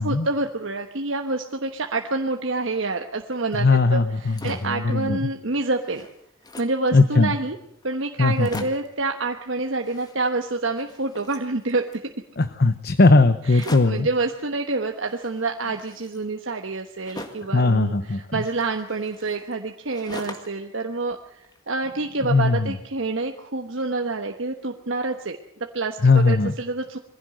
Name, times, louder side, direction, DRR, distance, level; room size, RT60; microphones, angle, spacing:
voice 1, 0.0-6.1 6.6-7.6 7.8-12.0 13.5-27.0, right 3 dB, 65° right, 4 dB, 1.2 m, -27 dB
voice 2, 3.5-5.2 6.9-7.3 8.2-8.6 12.4-14.1 17.5-18.4 22.2-22.8 26.0-26.5, left 3 dB, 50° left, 11 dB, 0.8 m, -19 dB
sound 1, 4.1-4.8 5.3-5.4 5.6-6.9 7.5-7.6 7.8-7.9 8.2-9.0 9.7-10.5 10.8-12.1 13.4-14.1 15.1-17.6 18.3-20.7 21.0-21.9, left 2 dB, 20° left, 1.8 m, -42 dB
22.5 x 16.0 x 7.8 m, 0.75 s
head